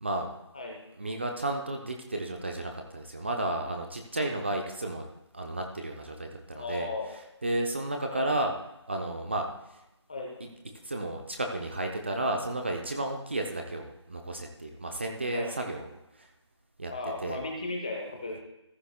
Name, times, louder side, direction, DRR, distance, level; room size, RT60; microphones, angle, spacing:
voice 1, 1.0-5.1 5.3-8.5 8.9-9.8 10.4-10.5 10.8-15.9 16.1-16.3 16.8-17.4, right 1 dB, 25° right, 2 dB, 0.7 m, -33 dB
voice 2, 6.5-7.1 8.1-8.3 10.1-10.4 15.3-15.5 16.9-18.4, left 2 dB, 15° left, 0 dB, 0.7 m, -35 dB
14.5 x 11.0 x 2.2 m, 0.89 s
figure-of-eight pair, 170°, 15 cm